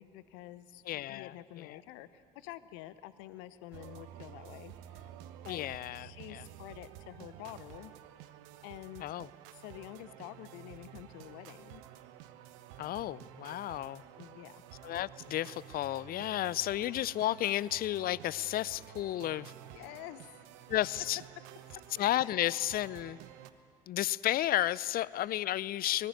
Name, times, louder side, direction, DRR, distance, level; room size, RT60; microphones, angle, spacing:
voice 1, 0.0-0.8 1.1-5.1 5.4-7.9 8.6-9.1 9.5-11.8 14.2-14.6 19.7-20.4 22.2-22.3, left 14 dB, 65° left, 15 dB, 1.0 m, -48 dB
voice 2, 0.9-1.8 5.5-6.4 9.0-9.3 12.8-14.0 14.8-19.5 20.7-21.2 22.0-23.2 23.9-26.1, left 13 dB, 45° left, 21 dB, 0.5 m, -32 dB
sound 1, 3.7-23.5, right 11 dB, 65° right, 1.1 m, -51 dB
25.0 x 19.5 x 9.4 m, 2.4 s
figure-of-eight pair, 55°, 21 cm